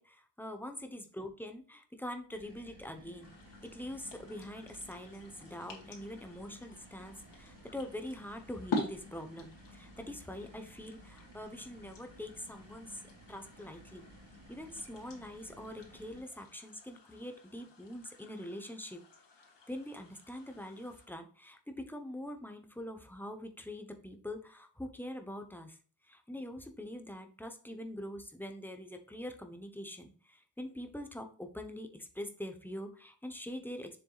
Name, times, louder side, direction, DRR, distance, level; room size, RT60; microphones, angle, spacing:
voice 1, 0.0-3.3 3.6-13.0 13.3-14.1 14.5-19.0 19.7-25.8 26.0-33.9, left 1 dB, 5° left, 5 dB, 1.0 m, -44 dB
sound 1, 2.3-16.2, equal, 70° right, 2.9 m, -56 dB
sound 2, 3.2-21.1, left 3 dB, 75° left, 2.3 m, -47 dB
7.1 x 6.9 x 2.5 m, 0.41 s
wide cardioid pair, 150°, 42 cm